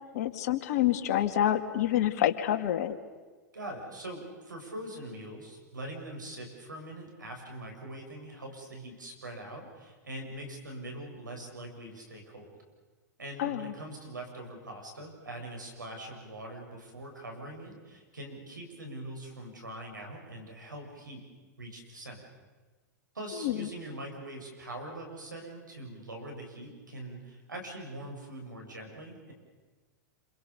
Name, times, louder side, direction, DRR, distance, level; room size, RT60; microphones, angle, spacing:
voice 1, 0.1-3.0 13.4-13.7 23.4-23.7, left 12 dB, 55° left, 8 dB, 2.2 m, -27 dB
voice 2, 3.5-12.6 13.2-21.3 21.6-22.2 23.1-29.3, right 1 dB, 85° right, 2 dB, 7.7 m, -43 dB
28.5 x 27.5 x 6.9 m, 1.3 s
figure-of-eight pair, 100°, 10 cm